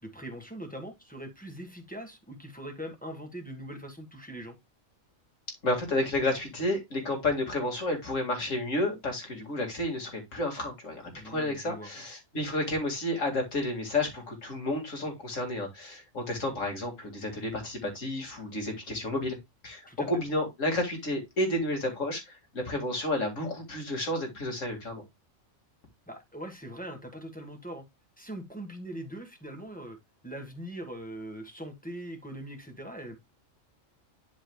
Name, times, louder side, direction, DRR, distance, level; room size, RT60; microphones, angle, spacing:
voice 1, 0.0-4.6 11.2-11.9 19.9-20.1 26.1-27.8 28.2-30.0 30.2-33.2, right 1 dB, 5° left, 1.5 m, -41 dB
voice 2, 5.6-19.4 19.6-25.0, left 1 dB, 75° left, 2.5 m, -31 dB
11.5 x 4.8 x 2.2 m
omnidirectional pair, 1.3 m